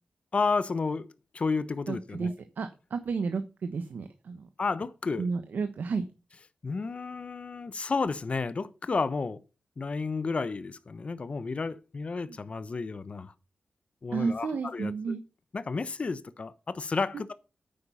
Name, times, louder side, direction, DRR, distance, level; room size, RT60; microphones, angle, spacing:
voice 1, 0.3-1.1 1.3-2.3 4.6-5.3 6.6-9.4 9.8-13.3 14.0-15.2 15.5-17.3, left 4 dB, 40° left, 0.8 m, -31 dB
voice 2, 1.9-4.5 5.2-6.0 12.3-12.4 14.1-15.2, right 5 dB, 80° right, 1.1 m, -32 dB
9.4 x 8.6 x 5.6 m
wide cardioid pair, 160°, 3 cm